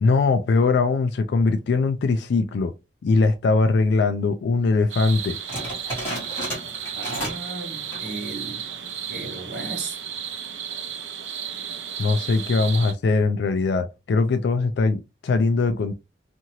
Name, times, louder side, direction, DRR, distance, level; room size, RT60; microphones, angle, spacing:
voice 1, 0.0-2.7 3.0-5.4 12.0-16.0, left 3 dB, 60° left, 0.3 m, -21 dB
sound 1, 4.9-12.9, right 8 dB, 80° right, 0.5 m, -34 dB
sound 2, 5.5-7.5 7.8-8.2 8.7-8.8 9.4-9.8, equal, 15° left, 1.5 m, -33 dB
voice 2, 6.9-8.7 9.1-10.0, right 3 dB, 65° right, 0.9 m, -35 dB
2.8 x 2.6 x 2.8 m
head